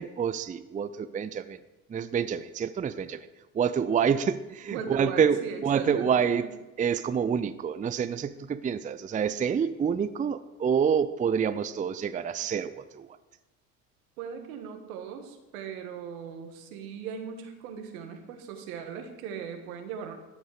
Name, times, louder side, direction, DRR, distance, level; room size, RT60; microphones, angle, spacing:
voice 1, 0.0-1.6 1.9-3.3 3.5-6.5 6.8-13.2, right 7 dB, 20° right, 13 dB, 0.5 m, -27 dB
voice 2, 4.7-6.3 14.2-20.1, right 7 dB, 75° right, 5 dB, 1.7 m, -38 dB
13.5 x 7.9 x 4.9 m, 1.1 s
hypercardioid pair, 65°, 43 cm